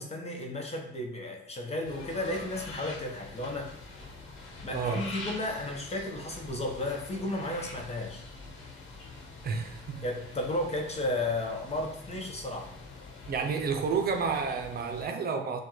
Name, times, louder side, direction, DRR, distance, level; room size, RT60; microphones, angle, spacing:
voice 1, 0.0-3.7 4.6-8.2 10.0-12.7, left 1 dB, 30° left, 1.0 m, -33 dB
sound 1, 1.8-15.1, left 2 dB, 90° left, 1.1 m, -45 dB
voice 2, 4.7-5.1 9.4-10.0 13.3-15.6, right 5 dB, 50° right, 0.6 m, -30 dB
6.8 x 2.3 x 3.1 m
cardioid pair, 90°, 20 cm